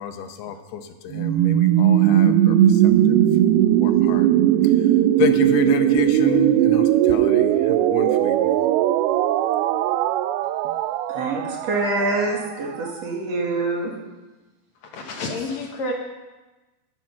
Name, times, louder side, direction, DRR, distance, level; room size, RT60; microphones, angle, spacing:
voice 1, 0.0-3.2 3.8-4.3 4.6-4.9 5.2-8.7, left 8 dB, 85° left, 7 dB, 2.8 m, -29 dB
sound 1, 1.1-12.9, right 12 dB, 85° right, 2.4 m, -19 dB
voice 2, 11.1-13.9, right 2 dB, 50° right, -1 dB, 2.3 m, -25 dB
voice 3, 14.9-15.9, left 2 dB, 65° left, 1 dB, 1.9 m, -29 dB
12.0 x 10.5 x 5.8 m, 1.1 s
omnidirectional pair, 4.5 m